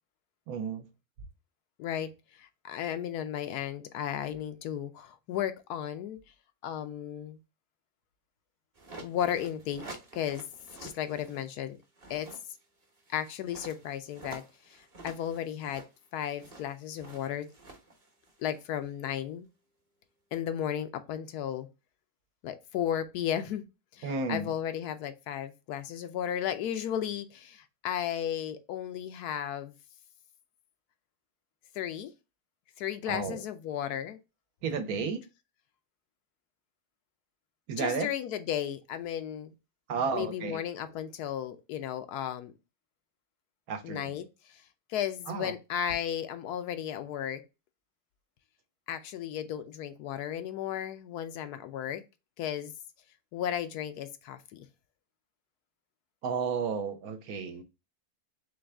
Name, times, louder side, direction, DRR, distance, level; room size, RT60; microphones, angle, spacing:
voice 1, 0.5-0.9 24.0-24.5 33.1-33.4 34.6-35.2 37.7-38.1 39.9-40.6 43.7-44.2 45.3-45.5 56.2-57.6, right 5 dB, 75° right, 1.2 m, -32 dB
voice 2, 1.8-2.1 2.4-6.2 6.6-7.4 9.0-9.8 10.1-10.4 10.8-11.8 12.1-12.3 13.1-15.8 16.1-17.5 18.4-19.5 20.3-21.7 22.4-23.6 23.9-29.7 31.7-32.1 32.8-34.2 37.8-39.5 40.1-42.5 43.8-44.6 44.9-47.4 48.9-52.0 52.4-52.7 53.3-54.7, left 10 dB, 80° left, 1.1 m, -34 dB
sound 1, 8.7-11.5 11.8-18.9, right 2 dB, 30° right, 0.8 m, -49 dB
3.9 x 3.3 x 3.3 m
omnidirectional pair, 1.6 m